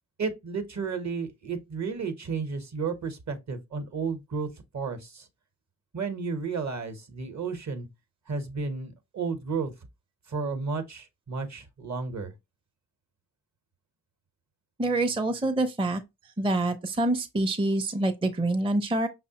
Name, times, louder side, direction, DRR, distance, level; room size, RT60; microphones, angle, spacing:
voice 1, 0.2-4.5 4.7-5.3 5.9-7.9 8.3-9.7 10.3-12.3, right 5 dB, 45° right, 0.9 m, -32 dB
voice 2, 14.8-16.0 16.4-19.1, right 2 dB, 15° right, 0.5 m, -26 dB
5.2 x 2.0 x 2.8 m
supercardioid pair, 40°, 40 cm